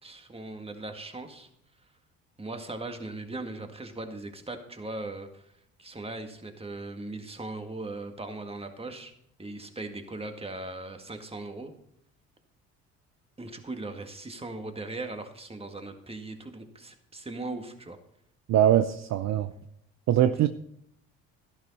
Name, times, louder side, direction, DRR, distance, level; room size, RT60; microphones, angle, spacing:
voice 1, 0.0-1.5 2.4-5.5 5.8-9.1 9.4-11.7 13.4-18.0, right 2 dB, 15° right, 6 dB, 1.9 m, -39 dB
voice 2, 18.5-19.5 20.1-20.5, right 11 dB, 50° right, 10 dB, 0.6 m, -22 dB
12.0 x 11.0 x 4.2 m, 0.73 s
supercardioid pair, 70°, 34 cm